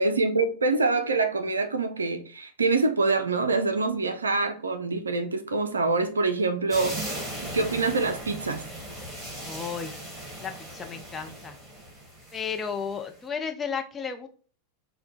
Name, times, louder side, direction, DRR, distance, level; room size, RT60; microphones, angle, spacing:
voice 1, 0.0-8.7, right 3 dB, 75° right, 0.5 m, -25 dB
sound 1, 6.7-13.0, right 1 dB, 5° right, 1.9 m, -38 dB
voice 2, 9.4-9.9 10.4-11.5 12.3-14.3, left 6 dB, 20° left, 0.6 m, -33 dB
4.3 x 2.2 x 3.8 m
figure-of-eight pair, 90°, 0 cm